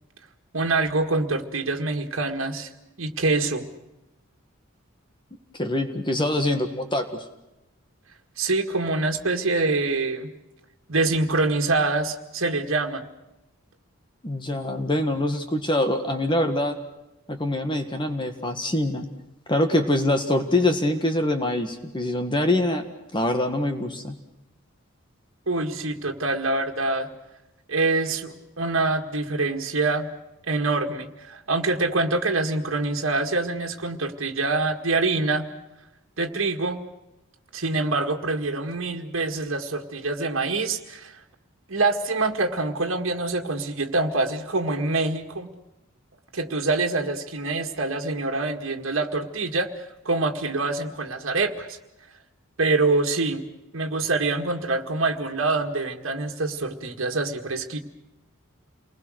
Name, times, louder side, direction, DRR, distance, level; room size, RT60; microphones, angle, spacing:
voice 1, 0.5-2.7 3.0-3.6 8.4-10.3 10.9-13.0 25.5-27.1 27.7-30.1 30.5-35.5 36.2-36.8 37.5-41.1 41.7-45.5 46.3-49.7 50.1-51.8 52.6-53.4 53.7-57.8, right 3 dB, 70° right, 3 dB, 1.9 m, -25 dB
voice 2, 5.5-7.1 14.2-16.8 17.3-19.1 19.5-22.8 23.1-24.2, left 1 dB, 20° left, 6 dB, 1.7 m, -24 dB
29.0 x 20.5 x 6.4 m, 0.93 s
head